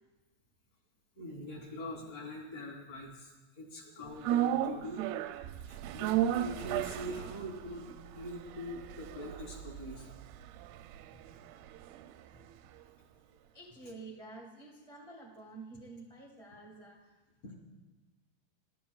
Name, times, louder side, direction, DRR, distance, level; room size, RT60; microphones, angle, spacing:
voice 1, 1.2-3.3 3.6-5.0 5.5-10.1 17.4-17.5, left 1 dB, 45° left, -4 dB, 3.9 m, -43 dB
sound 1, 4.2-12.5 12.8-12.9, right 11 dB, 90° right, 2.4 m, -35 dB
voice 2, 13.5-17.2, right 3 dB, 65° right, -3 dB, 0.3 m, -49 dB
25.5 x 12.5 x 2.4 m, 1.2 s
omnidirectional pair, 4.2 m